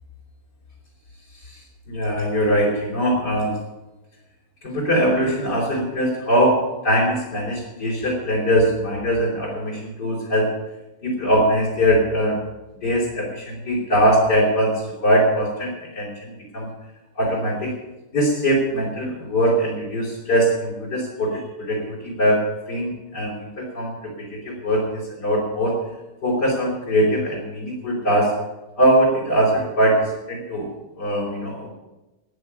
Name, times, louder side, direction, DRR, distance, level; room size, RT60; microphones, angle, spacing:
voice 1, 1.9-3.5 4.6-10.5 11.0-12.4 12.8-16.7 17.1-17.7 18.1-25.8 26.2-28.3 28.8-30.7 31.0-31.7, equal, 70° left, -5 dB, 5.0 m, -21 dB
15.5 x 9.6 x 8.4 m, 1.0 s
omnidirectional pair, 1.8 m